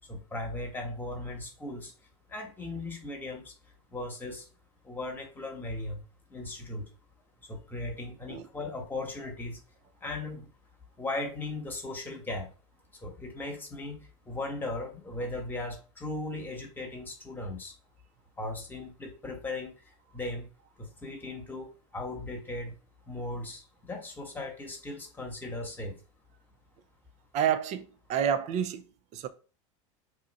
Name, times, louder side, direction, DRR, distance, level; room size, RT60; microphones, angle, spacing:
voice 1, 0.1-3.5 3.9-4.5 4.8-6.0 6.3-6.9 7.5-9.6 10.0-10.5 11.0-12.5 12.9-17.7 18.4-20.5 20.8-22.8 23.1-26.0, left 2 dB, 10° left, 1.2 m, -37 dB
voice 2, 27.3-28.8 29.1-29.3, right 9 dB, 45° right, 0.5 m, -29 dB
2.8 x 2.4 x 4.0 m
hypercardioid pair, 100°, 16 cm